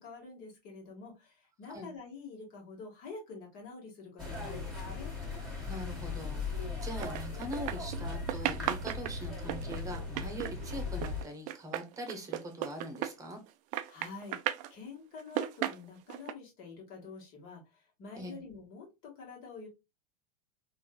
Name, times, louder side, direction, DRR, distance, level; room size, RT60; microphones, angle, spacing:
voice 1, 0.0-5.1 13.9-14.4 14.7-19.7, left 4 dB, 50° left, 0 dB, 1.7 m, -47 dB
sound 1, 4.2-11.2, left 3 dB, ahead, 1.8 m, -38 dB
voice 2, 5.7-13.4 18.1-18.4, equal, 15° right, 5 dB, 1.0 m, -42 dB
sound 2, 7.0-8.0 8.3-13.5 13.7-14.7 15.2-16.3, right 13 dB, 40° right, 0.4 m, -35 dB
3.7 x 2.6 x 2.3 m, 0.24 s
supercardioid pair, 120°, 19 cm